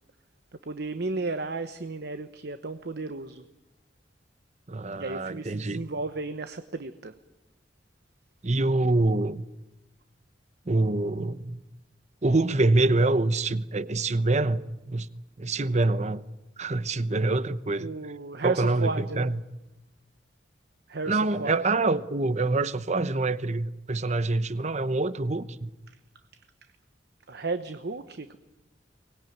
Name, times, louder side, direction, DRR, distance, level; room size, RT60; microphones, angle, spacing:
voice 1, 0.7-3.4 5.0-7.1 17.8-19.3 20.9-21.6 27.3-28.4, right 3 dB, 60° right, 1.0 m, -33 dB
voice 2, 4.7-5.8 8.4-9.5 10.7-11.6 12.2-15.1 15.4-16.2 16.6-17.9 18.4-19.4 21.1-25.7, right 2 dB, 40° right, 0.9 m, -25 dB
24.0 x 20.0 x 9.3 m
head